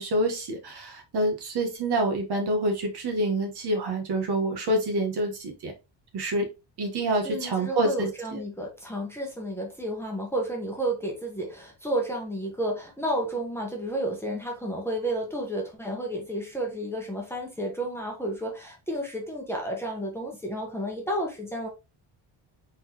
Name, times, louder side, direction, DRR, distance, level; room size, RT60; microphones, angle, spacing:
voice 1, 0.0-5.7 6.1-6.5 6.8-8.4, right 1 dB, 55° right, 1.4 m, -27 dB
voice 2, 7.2-21.7, right 1 dB, 5° left, 1.0 m, -31 dB
4.1 x 3.9 x 2.9 m
cardioid pair, 155°, 46 cm